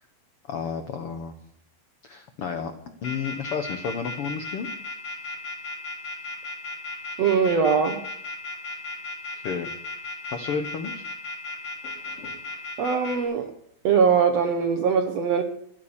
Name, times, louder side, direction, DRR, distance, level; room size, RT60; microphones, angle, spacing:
voice 1, 0.5-1.3 2.0-2.7 3.0-4.7 9.3-9.7 10.3-11.0, left 6 dB, 85° left, 8 dB, 1.2 m, -31 dB
sound 1, 3.0-13.2, left 2 dB, 45° left, 4.6 m, -35 dB
voice 2, 7.2-8.0 12.8-13.5 13.8-15.4, right 6 dB, 70° right, 7 dB, 1.6 m, -21 dB
14.0 x 11.5 x 7.1 m, 0.72 s
omnidirectional pair, 4.3 m